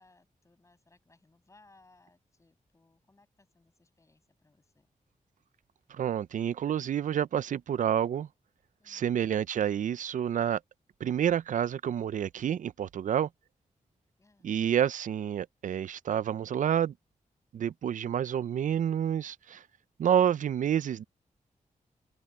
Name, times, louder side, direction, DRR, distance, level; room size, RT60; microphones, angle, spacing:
voice 1, 0.0-4.9 8.8-9.1 14.2-14.5, left 3 dB, 20° left, 7.5 m, -64 dB
voice 2, 5.9-8.3 8.9-10.6 11.0-13.3 14.4-16.9 17.5-19.6 20.0-21.0, right 9 dB, 70° right, 0.4 m, -29 dB
open air
wide cardioid pair, 175°, 14 cm